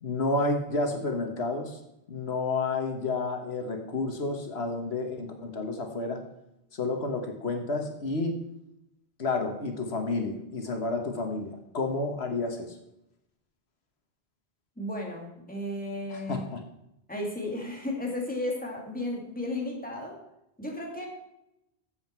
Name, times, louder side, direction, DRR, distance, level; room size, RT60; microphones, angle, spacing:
voice 1, 0.0-1.8 2.1-6.2 6.7-8.4 9.2-12.7 16.1-16.6, left 3 dB, 85° left, 5 dB, 1.6 m, -30 dB
voice 2, 14.8-16.5 17.1-20.2 20.6-21.1, left 1 dB, 10° left, -1 dB, 2.6 m, -34 dB
13.5 x 7.9 x 4.5 m, 0.84 s
omnidirectional pair, 1.0 m